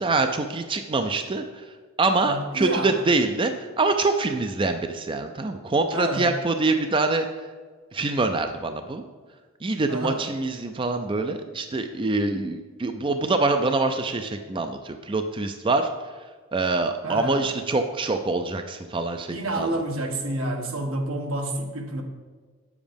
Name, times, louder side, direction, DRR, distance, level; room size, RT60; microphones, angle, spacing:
voice 1, 0.0-1.4 2.0-3.5 3.8-7.3 7.9-9.0 9.6-15.9 16.5-19.3 19.6-19.7, right 3 dB, 25° right, 7 dB, 0.4 m, -25 dB
voice 2, 2.2-3.0 5.9-6.4 9.9-10.2 17.0-17.5 19.3-22.0, right 1 dB, 80° right, 3 dB, 1.4 m, -29 dB
8.9 x 7.2 x 5.2 m, 1.5 s
head